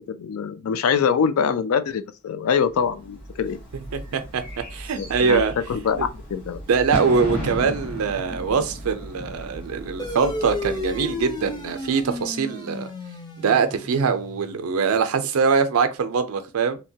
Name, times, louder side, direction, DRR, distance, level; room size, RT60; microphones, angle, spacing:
voice 1, 0.1-3.6 5.0-6.6, left 6 dB, 80° left, 0.4 m, -24 dB
Bird / Fireworks, 2.9-12.1, equal, 40° left, 1.1 m, -35 dB
voice 2, 3.9-4.4 4.7-5.5 6.0-6.1 6.7-12.9 13.4-16.8, right 5 dB, 85° right, 0.4 m, -23 dB
sound 1, 10.0-14.9, left 2 dB, 20° left, 0.5 m, -33 dB
2.8 x 2.2 x 2.7 m
head